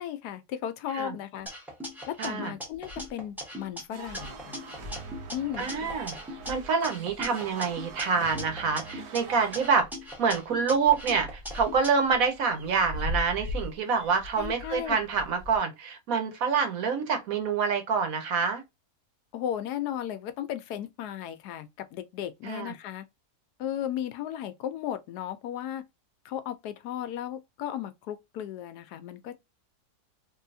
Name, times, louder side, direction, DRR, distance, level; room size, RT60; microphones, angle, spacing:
voice 1, 0.0-1.5 2.1-4.6 5.3-5.7 14.4-15.0 19.3-23.1 23.6-25.8 26.2-29.4, left 10 dB, 80° left, 1.1 m, -35 dB
sound 1, 1.5-3.8 4.1-6.5 6.8-9.2 9.5-11.9, left 1 dB, ahead, 0.8 m, -40 dB
voice 2, 2.2-2.5 5.6-6.1 6.5-9.9 10.2-18.6 22.4-22.7, right 5 dB, 65° right, 1.3 m, -27 dB
sound 2, 2.7-3.3 3.7-3.8 4.0-8.0 8.6-9.4 9.7-15.6, left 1 dB, 40° right, 1.2 m, -41 dB
sound 3, 3.9-9.7, right 5 dB, 85° right, 1.4 m, -43 dB
3.3 x 2.7 x 2.5 m
omnidirectional pair, 1.7 m